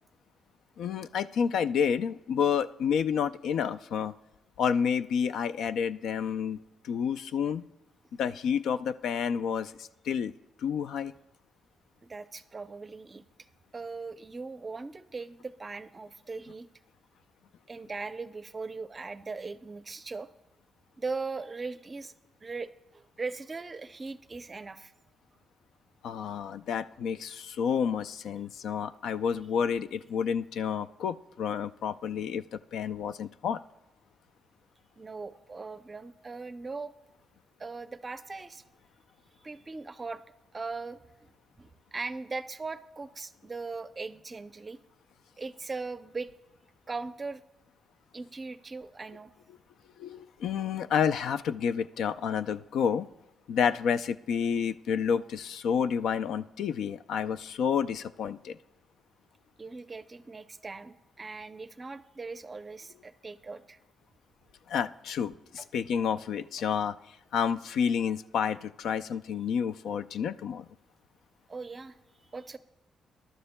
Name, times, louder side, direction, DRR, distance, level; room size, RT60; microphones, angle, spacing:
voice 1, 0.8-4.2 4.6-6.6 6.8-7.6 8.2-10.3 10.6-11.1 26.0-32.4 32.7-33.6 50.0-53.1 53.5-58.6 64.7-66.9 67.3-70.7, left 7 dB, 85° left, 12 dB, 0.3 m, -29 dB
voice 2, 12.1-13.2 13.7-16.7 17.7-20.3 21.0-22.1 22.4-24.9 35.0-36.9 37.6-38.6 39.4-40.2 40.5-41.0 41.6-44.8 45.4-46.3 46.9-47.4 48.1-49.3 59.6-63.8 66.6-66.7 71.5-72.0 72.3-72.6, right 4 dB, 25° right, 11 dB, 0.5 m, -39 dB
21.5 x 11.5 x 2.2 m, 0.91 s
cardioid pair, 135°, 0 cm